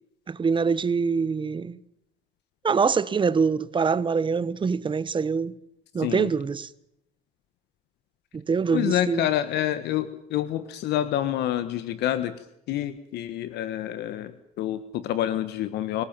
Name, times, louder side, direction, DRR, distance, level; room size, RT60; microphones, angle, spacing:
voice 1, 0.3-1.8 2.6-5.5 5.9-6.7 8.3-9.3, right 5 dB, 30° right, 1.3 m, -24 dB
voice 2, 6.0-6.3 8.7-12.3 12.7-16.0, left 12 dB, 80° left, 1.5 m, -27 dB
25.5 x 17.5 x 9.0 m
cardioid pair, 110°, 17 cm